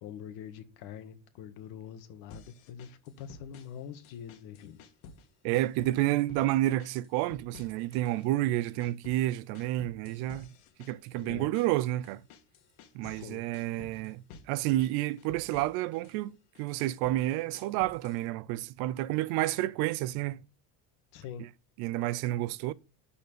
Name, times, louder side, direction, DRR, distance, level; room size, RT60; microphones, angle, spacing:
voice 1, 0.0-4.8 11.2-11.5 13.0-13.4 21.1-21.5, left 8 dB, 65° left, 1.6 m, -44 dB
sound 1, 2.3-3.8 4.0-5.3 5.5-6.5 6.8-8.3 8.5-13.3 13.5-14.5 14.8-16.2 16.5-18.2, left 5 dB, 85° left, 1.9 m, -52 dB
voice 2, 5.4-10.5 10.8-12.2 12.9-20.4 21.4-21.5 21.8-22.7, right 16 dB, 60° right, 0.6 m, -30 dB
12.0 x 4.4 x 6.8 m
cardioid pair, 165°, 42 cm